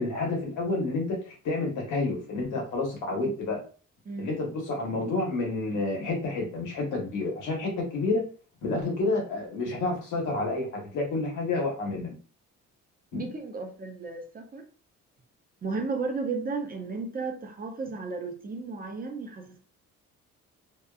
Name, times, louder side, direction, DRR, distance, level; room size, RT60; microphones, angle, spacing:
voice 1, 0.0-3.6 4.2-8.3 8.6-12.1 13.1-13.2, left 3 dB, 80° left, 1.2 m, -29 dB
voice 2, 13.1-14.6 15.6-19.6, right 4 dB, 30° right, 0.6 m, -34 dB
2.8 x 2.3 x 2.3 m
cardioid pair, 90°, 30 cm